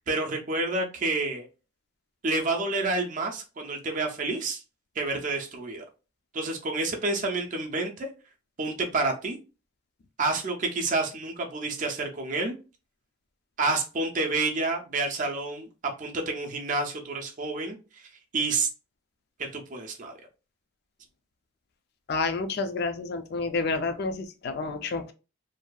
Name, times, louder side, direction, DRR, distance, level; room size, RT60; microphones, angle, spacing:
voice 1, 0.1-1.5 2.2-4.6 5.0-5.8 6.3-8.1 8.6-9.4 10.2-12.6 13.6-15.7 16.0-18.0 18.3-18.7 19.4-20.1, right 3 dB, 40° right, 2 dB, 0.5 m, -29 dB
voice 2, 22.1-25.1, left 3 dB, 50° left, 8 dB, 0.4 m, -29 dB
2.6 x 2.3 x 2.2 m, 0.32 s
head